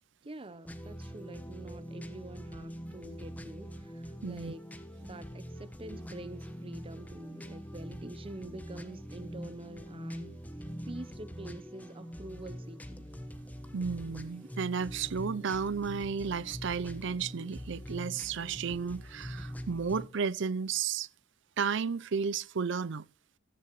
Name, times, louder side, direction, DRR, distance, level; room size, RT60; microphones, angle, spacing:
voice 1, 0.2-4.6 5.0-10.4 10.9-13.1, right 1 dB, 25° right, 0.7 m, -46 dB
sound 1, 0.7-20.1, equal, 10° left, 1.3 m, -44 dB
voice 2, 4.2-4.5 13.7-21.1 21.6-23.0, right 6 dB, 65° right, 0.5 m, -33 dB
14.5 x 14.5 x 3.1 m
head